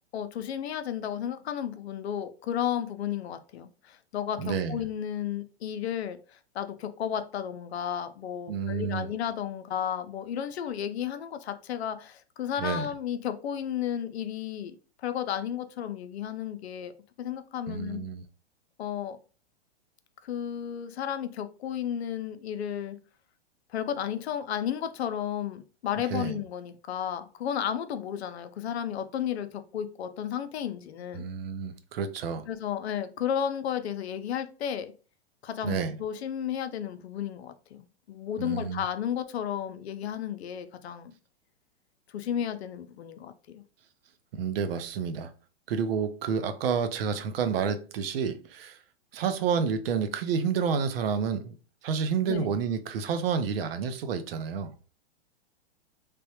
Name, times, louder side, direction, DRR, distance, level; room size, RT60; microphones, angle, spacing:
voice 1, 0.1-14.8 15.0-16.9 17.2-18.0 18.8-19.2 20.2-23.0 23.7-31.3 32.5-34.9 35.4-41.1 42.1-43.6 52.3-52.4, left 9 dB, 75° left, 0.5 m, -33 dB
voice 2, 4.4-4.8 8.5-9.1 12.6-12.9 17.7-18.2 26.1-26.4 31.1-32.5 35.6-36.0 38.4-38.8 44.3-45.3 45.7-48.8 49.1-51.5 51.8-54.7, right 6 dB, 60° right, 0.6 m, -29 dB
3.3 x 2.2 x 2.8 m
hypercardioid pair, 125°, 33 cm